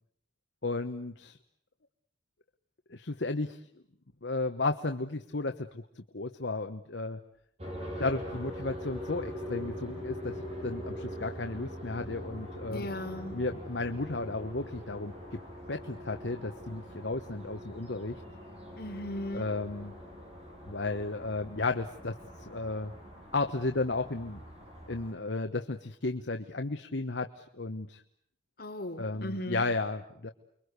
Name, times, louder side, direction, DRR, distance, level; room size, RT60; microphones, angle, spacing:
voice 1, 0.6-1.4 2.9-3.8 4.2-7.2 8.0-12.9 13.3-15.4 15.7-18.2 19.3-19.9 20.7-22.9 23.3-24.4 24.9-28.0 29.0-30.3, left 3 dB, 70° left, 6 dB, 1.2 m, -34 dB
sound 1, 7.6-25.1, equal, 35° right, 7.7 m, -43 dB
voice 2, 12.7-13.4 18.7-19.5 28.6-29.6, left 1 dB, 55° left, 3 dB, 3.7 m, -37 dB
30.0 x 23.0 x 8.2 m, 0.67 s
head